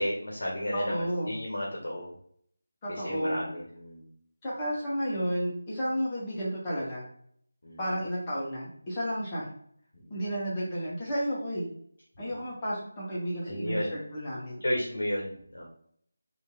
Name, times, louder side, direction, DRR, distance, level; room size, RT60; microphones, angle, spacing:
voice 1, 0.0-2.1 2.9-4.1 7.6-8.0 9.9-10.2 12.2-12.4 13.4-14.0 14.6-15.7, equal, 65° left, -3 dB, 1.2 m, -33 dB
voice 2, 0.7-1.3 2.8-3.4 4.4-7.0 7.8-9.5 10.1-11.7 12.2-14.6, equal, 20° left, -7 dB, 1.4 m, -32 dB
3.2 x 3.0 x 3.1 m, 0.63 s
figure-of-eight pair, 160°, 0 cm